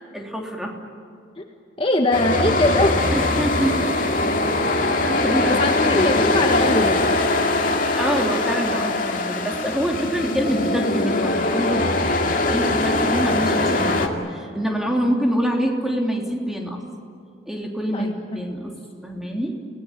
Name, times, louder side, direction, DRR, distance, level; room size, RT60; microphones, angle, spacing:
voice 1, 0.1-0.7 3.1-5.6 5.9-6.3 8.0-16.8 17.5-18.8 19.0-19.6, equal, ahead, 0 dB, 3.2 m, -26 dB
voice 2, 1.8-3.0 5.5-7.2 17.9-18.1 18.6-18.7, left 1 dB, 30° left, 3 dB, 1.5 m, -22 dB
sound 1, 2.1-14.1, left 2 dB, 45° left, 2.4 m, -21 dB
29.5 x 18.5 x 9.4 m, 2.6 s
head